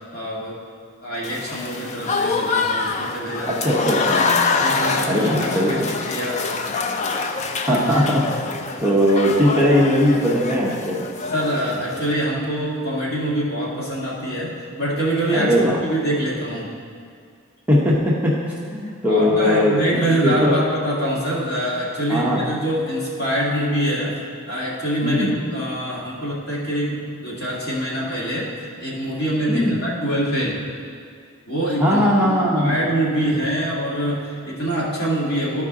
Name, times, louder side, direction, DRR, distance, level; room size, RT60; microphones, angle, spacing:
voice 1, 0.1-0.6 1.0-3.7 4.5-6.5 11.3-14.5 14.8-15.5 15.8-16.7 19.1-24.2 24.5-28.5 28.8-30.6 31.5-32.0 32.6-35.6, right 1 dB, 45° left, -6 dB, 1.8 m, -24 dB
Applause / Crowd, 1.2-12.1, left 4 dB, 30° left, 0.3 m, -25 dB
voice 2, 3.5-4.4 5.0-5.9 7.7-8.2 8.8-11.0 15.3-15.8 17.7-20.6 22.1-22.4 25.0-25.4 29.5-29.8 31.8-32.8, equal, 5° right, -6 dB, 0.8 m, -19 dB
12.5 x 4.8 x 3.6 m, 2.2 s
head